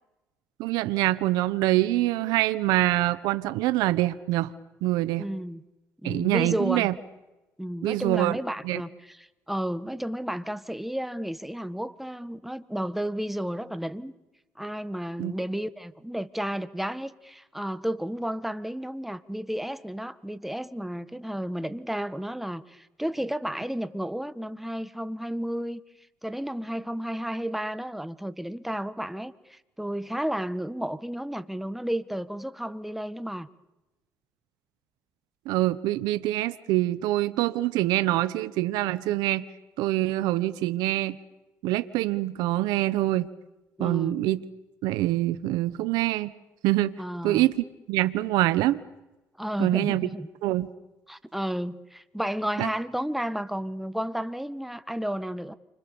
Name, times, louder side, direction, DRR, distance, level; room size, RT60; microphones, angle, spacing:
voice 1, 0.6-4.5 4.8-5.3 6.0-6.9 7.8-8.4 8.6-8.8 15.2-15.3 35.5-39.5 39.8-41.2 41.6-43.3 43.8-44.4 44.8-46.3 46.6-46.9 47.2-47.5 47.9-48.8 49.6-50.1 50.4-50.7 52.6-52.7, right 16 dB, 85° right, 1.0 m, -25 dB
voice 2, 5.2-5.6 6.0-6.9 7.6-14.1 14.6-25.8 26.2-33.5 43.8-44.2 47.0-47.5 49.4-50.3 51.1-55.6, equal, 5° right, 1.6 m, -32 dB
29.5 x 25.5 x 7.1 m
supercardioid pair, 70°, 7 cm